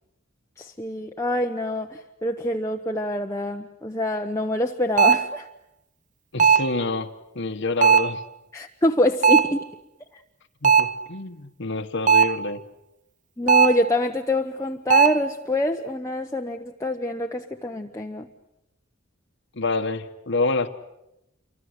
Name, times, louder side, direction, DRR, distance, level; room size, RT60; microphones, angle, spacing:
voice 1, 0.6-5.5 8.5-9.7 10.1-10.2 13.4-18.3, left 1 dB, 15° left, 2 dB, 1.0 m, -25 dB
sound 1, 5.0-5.3 6.4-6.8 7.8-8.2 9.2-9.6 10.6-11.0 12.1-12.5 13.5-13.9 14.9-15.3, right 6 dB, 40° right, 0.9 m, -17 dB
voice 2, 6.3-7.1 7.3-8.2 10.6-12.6 19.6-20.7, left 3 dB, 60° left, 7 dB, 1.3 m, -27 dB
28.0 x 25.0 x 8.1 m, 0.88 s
head